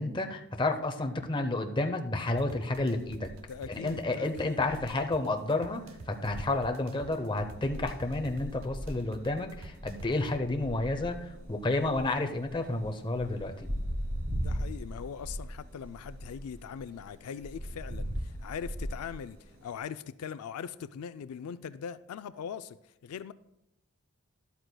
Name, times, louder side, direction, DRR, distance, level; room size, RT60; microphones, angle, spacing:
voice 1, 0.0-3.3 3.7-13.7, left 2 dB, 20° left, 0.7 m, -31 dB
sound 1, 2.4-10.4, right 3 dB, 65° right, 0.6 m, -49 dB
sound 2, 2.7-19.8, equal, 90° right, 2.5 m, -40 dB
voice 2, 3.5-4.6 14.3-23.3, left 7 dB, 85° left, 0.4 m, -41 dB
12.5 x 11.5 x 2.2 m
head